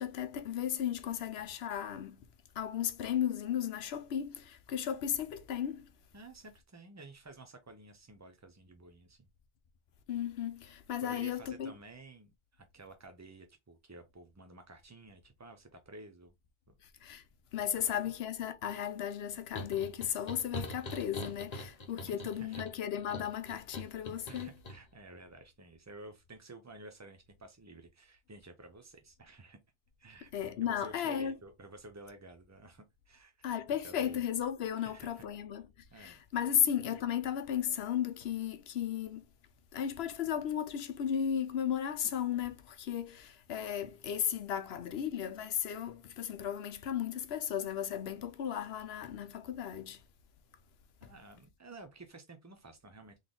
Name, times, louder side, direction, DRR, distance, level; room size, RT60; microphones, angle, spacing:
voice 1, 0.0-2.2 2.5-5.9 10.1-11.7 17.0-17.2 17.5-24.5 30.3-31.3 33.4-35.6 36.0-39.3 39.7-50.0 51.0-51.1, left 9 dB, 80° left, 0.9 m, -35 dB
voice 2, 6.1-9.3 11.0-16.3 16.7-16.8 17.8-18.0 22.1-22.6 24.3-29.6 30.0-34.2 34.8-35.3 35.9-36.2 36.5-36.6 51.0-53.2, right 2 dB, 30° right, 0.3 m, -52 dB
sound 1, 19.5-24.8, left 1 dB, 40° left, 1.0 m, -43 dB
3.9 x 3.2 x 3.7 m
omnidirectional pair, 1.0 m